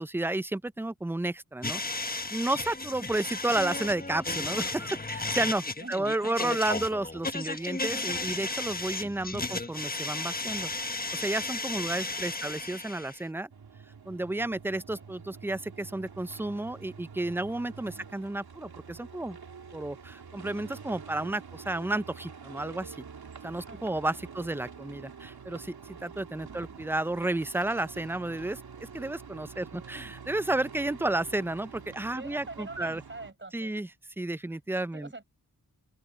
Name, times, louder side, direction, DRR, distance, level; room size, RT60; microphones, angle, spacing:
voice 1, 0.0-1.8 2.1-10.7 11.1-13.5 14.1-19.4 19.7-23.0 23.4-33.0 33.5-33.9 34.2-35.1, right 2 dB, 5° right, 0.4 m, -32 dB
sound 1, 1.6-13.2, left 2 dB, 25° left, 1.3 m, -34 dB
voice 2, 5.8-7.0 9.2-9.5 12.0-12.6 14.7-15.1 17.9-18.2 23.7-24.2 26.5-26.8 29.7-30.0 32.1-33.7 34.9-35.2, right 2 dB, 30° right, 4.9 m, -47 dB
sound 2, 13.5-33.3, right 6 dB, 90° right, 3.0 m, -47 dB
open air
cardioid pair, 50°, 36 cm